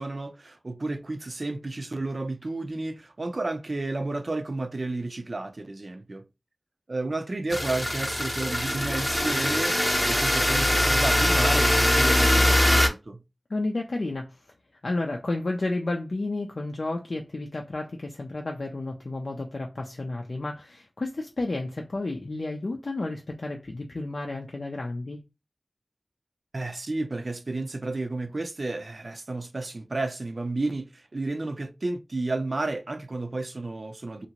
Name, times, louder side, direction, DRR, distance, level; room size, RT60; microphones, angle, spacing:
voice 1, 0.0-6.2 6.9-13.2 26.5-34.3, right 2 dB, 65° right, 0.4 m, -32 dB
sound 1, 7.5-12.9, left 1 dB, 20° left, 0.6 m, -22 dB
voice 2, 13.5-14.4 14.8-25.2, left 2 dB, 80° left, 0.4 m, -31 dB
2.8 x 2.5 x 2.9 m
wide cardioid pair, 45°, 0 cm